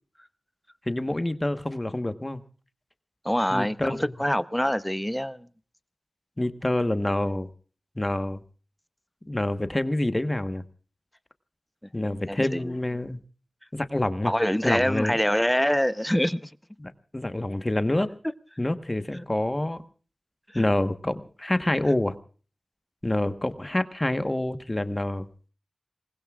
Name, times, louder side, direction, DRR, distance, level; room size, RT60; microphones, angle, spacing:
voice 1, 0.9-2.4 3.5-4.1 6.4-7.5 8.0-8.4 9.3-10.6 11.9-13.2 13.7-14.3 14.6-15.2 16.8-18.1 18.6-19.8 20.5-22.2 23.0-25.3, left 1 dB, 25° left, 1.2 m, -27 dB
voice 2, 3.2-5.5 12.0-12.7 14.3-16.5 19.1-19.2 20.5-20.6, equal, 10° left, 0.8 m, -25 dB
26.5 x 20.0 x 2.4 m
cardioid pair, 40°, 0 cm